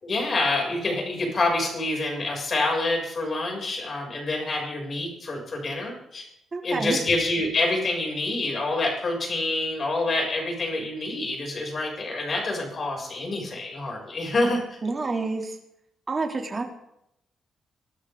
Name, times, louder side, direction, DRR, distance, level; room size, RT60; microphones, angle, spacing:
voice 1, 0.0-6.3 6.6-14.8, left 2 dB, 40° left, 0 dB, 7.1 m, -27 dB
voice 2, 6.5-7.0 14.8-15.6 16.1-16.6, right 3 dB, 30° right, 2 dB, 3.0 m, -28 dB
24.0 x 13.0 x 3.9 m, 0.78 s
cardioid pair, 105°, 0 cm